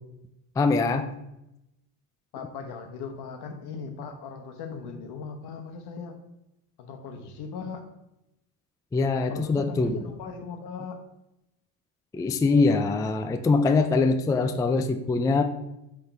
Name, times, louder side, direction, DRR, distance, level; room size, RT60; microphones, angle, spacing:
voice 1, 0.6-1.1 8.9-10.0 12.1-15.4, left 3 dB, 10° left, 8 dB, 0.3 m, -23 dB
voice 2, 2.3-6.2 6.8-7.8 9.3-11.0, left 5 dB, 65° left, 6 dB, 1.3 m, -38 dB
7.6 x 3.8 x 4.6 m, 0.88 s
supercardioid pair, 100°, 42 cm